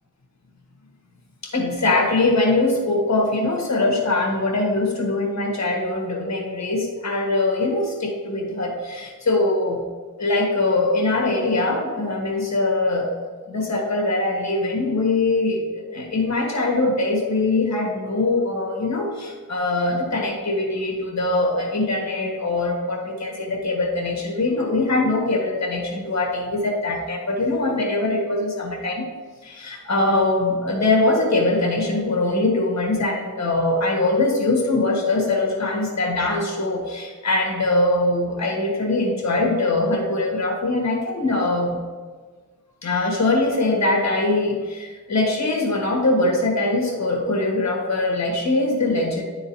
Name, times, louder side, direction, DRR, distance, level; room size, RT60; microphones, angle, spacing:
voice 1, 1.4-9.8 10.2-13.1 13.5-29.1 29.4-41.8 42.8-49.2, left 2 dB, 55° left, -1 dB, 1.5 m, -22 dB
11.0 x 3.8 x 2.7 m, 1.5 s
wide cardioid pair, 65°, 33 cm